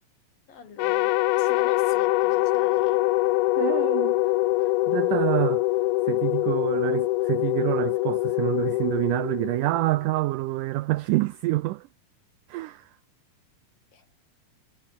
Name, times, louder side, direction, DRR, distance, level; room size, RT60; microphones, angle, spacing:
voice 1, 0.5-3.1 13.9-14.1, left 6 dB, 65° left, 5.8 m, -44 dB
sound 1, 0.8-10.1, left 18 dB, 85° left, 2.6 m, -24 dB
voice 2, 3.6-4.2 4.6-5.7 6.1-11.9 12.5-12.9, right 18 dB, 80° right, 1.9 m, -27 dB
omnidirectional pair, 4.4 m